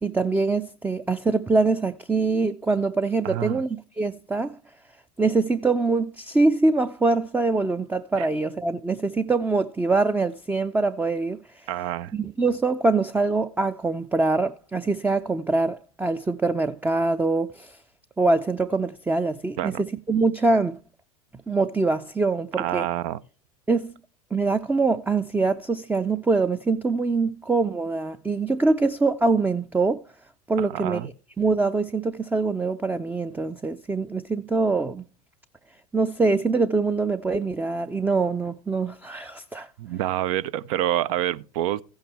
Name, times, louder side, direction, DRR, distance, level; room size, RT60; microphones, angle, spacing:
voice 1, 0.0-4.6 5.2-11.4 12.1-17.8 18.2-20.8 21.5-22.9 23.7-23.9 24.3-30.0 30.5-31.1 31.4-35.1 35.9-39.7, right 3 dB, 10° right, 0.5 m, -24 dB
voice 2, 3.2-3.6 8.2-8.3 11.7-12.1 19.6-19.8 22.6-23.2 30.6-31.1 39.8-41.8, right 13 dB, 60° right, 0.6 m, -27 dB
15.0 x 8.8 x 3.4 m
hypercardioid pair, 90°, 19 cm